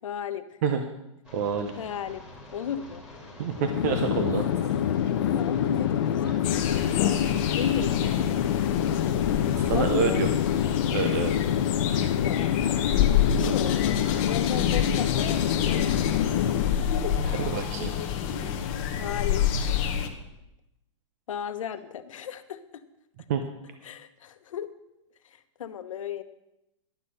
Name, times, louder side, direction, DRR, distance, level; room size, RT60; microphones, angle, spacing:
voice 1, 0.0-0.6 1.8-2.3 2.5-3.0 5.2-6.9 7.5-8.0 9.7-10.2 12.2-12.5 13.3-16.1 17.0-17.3 18.4-19.5 21.3-22.6 23.8-24.7 25.2-26.2, left 8 dB, 80° left, 10 dB, 1.0 m, -34 dB
sound 1, 1.2-11.4, left 1 dB, 5° right, 2.1 m, -46 dB
voice 2, 1.3-1.7 3.4-4.5 6.3-6.4 9.6-10.3 10.9-11.4 13.4-13.5 17.5-17.9 23.3-23.4, right 6 dB, 30° right, 7 dB, 0.7 m, -27 dB
Chatter / Fixed-wing aircraft airplane, 3.5-16.9, left 10 dB, 45° left, 0.6 m, -26 dB
sound 2, 6.4-20.1, left 9 dB, 25° left, 1.0 m, -29 dB
11.5 x 8.4 x 5.5 m, 0.88 s
hypercardioid pair, 175°, 17 cm